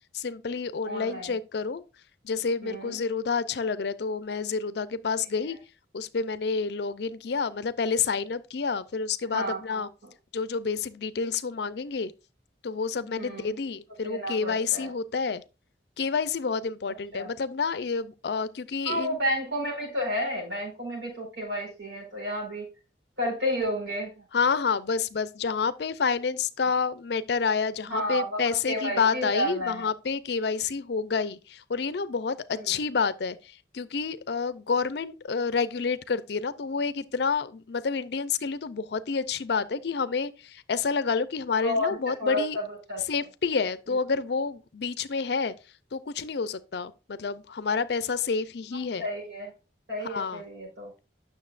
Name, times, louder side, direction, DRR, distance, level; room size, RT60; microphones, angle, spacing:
voice 1, 0.1-1.8 2.2-5.6 5.9-9.9 10.3-12.1 12.6-15.4 16.0-19.2 24.3-42.6 43.1-45.5 45.9-49.1 50.0-50.4, left 5 dB, 65° left, 0.5 m, -29 dB
voice 2, 0.9-1.3 2.6-3.0 9.3-10.1 13.2-13.5 14.0-14.9 17.1-17.3 18.8-22.7 23.2-24.1 27.9-29.8 32.5-32.8 41.6-42.6 42.9-43.0 49.0-49.5 49.9-50.9, equal, 75° right, 4.6 m, -31 dB
9.5 x 6.4 x 2.5 m
head